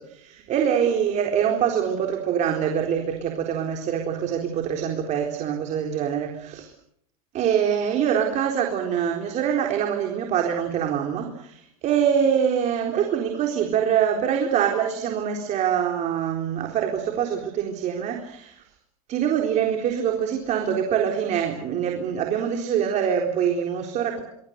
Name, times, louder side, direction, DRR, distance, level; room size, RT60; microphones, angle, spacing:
voice 1, 0.1-6.7 7.3-18.6 19.1-24.2, right 8 dB, 40° right, 2 dB, 4.0 m, -24 dB
26.0 x 24.0 x 6.7 m, 0.72 s
supercardioid pair, 120°, 18 cm